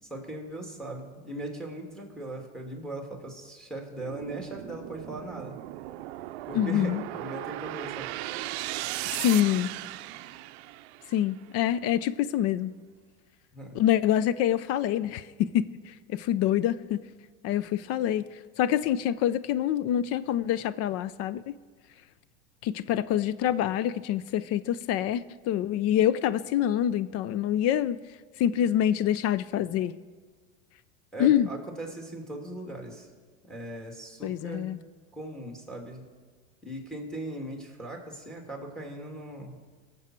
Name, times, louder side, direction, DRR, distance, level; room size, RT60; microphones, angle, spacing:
voice 1, 0.0-5.6 6.5-8.1 13.5-13.8 31.1-33.1 33.4-34.7 35.1-36.1 36.6-39.6, right 1 dB, ahead, 1 dB, 2.6 m, -39 dB
sound 1, 4.0-11.3, right 16 dB, 65° right, 0.6 m, -37 dB
voice 2, 6.5-7.0 9.1-9.7 11.1-12.7 13.7-17.0 17.4-18.3 18.6-21.6 22.6-28.0 28.4-29.9 31.2-31.5 34.2-34.8, left 11 dB, 45° left, 16 dB, 0.5 m, -26 dB
19.5 x 7.6 x 4.5 m, 1.4 s
hypercardioid pair, 105°, 35 cm